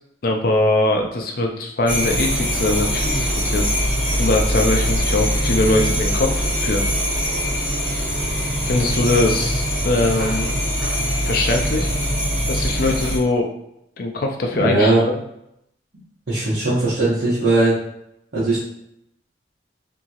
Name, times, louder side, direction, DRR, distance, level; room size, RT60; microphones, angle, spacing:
voice 1, 0.2-3.6 4.2-6.8 8.7-10.5 11.2-11.9 12.5-13.5 14.0-15.2, left 2 dB, 50° left, 2 dB, 0.4 m, -21 dB
sound 1, 1.9-13.2, equal, 10° right, 0.9 m, -22 dB
voice 2, 14.6-15.0 16.3-17.8 18.3-18.6, right 2 dB, 65° right, -11 dB, 0.9 m, -18 dB
2.8 x 2.8 x 2.4 m, 0.80 s
head